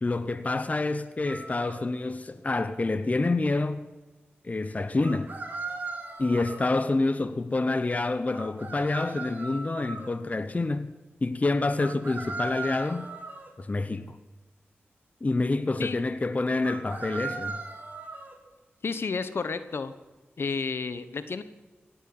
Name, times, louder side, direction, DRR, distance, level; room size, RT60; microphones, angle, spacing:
voice 1, 0.0-3.9 4.4-5.3 6.2-10.9 11.2-13.1 13.6-14.2 15.2-17.6, left 2 dB, 35° left, 1.0 m, -27 dB
sound 1, 1.3-1.9 5.0-6.7 8.3-10.1 11.8-13.5 16.6-18.4, right 3 dB, 45° right, 3.1 m, -38 dB
voice 2, 18.8-19.9 20.4-21.4, left 4 dB, 65° left, 1.2 m, -31 dB
17.5 x 9.1 x 8.9 m
cardioid pair, 60°, 4 cm